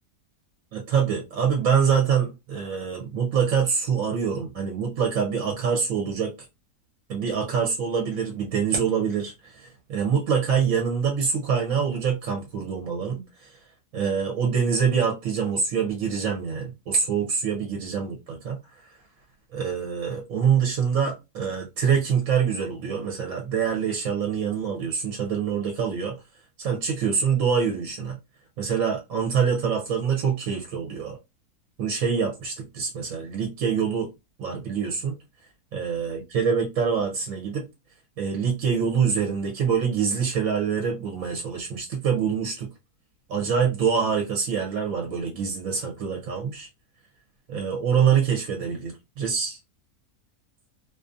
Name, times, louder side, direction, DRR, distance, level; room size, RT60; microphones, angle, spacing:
voice 1, 0.7-6.3 7.1-13.6 13.9-18.9 19.5-26.1 26.6-28.2 28.6-31.2 31.8-34.1 34.4-35.2 35.7-37.7 38.2-42.7 43.3-46.7 47.5-49.6, right 6 dB, 65° right, 0.9 m, -25 dB
2.5 x 2.4 x 2.4 m
omnidirectional pair, 1.6 m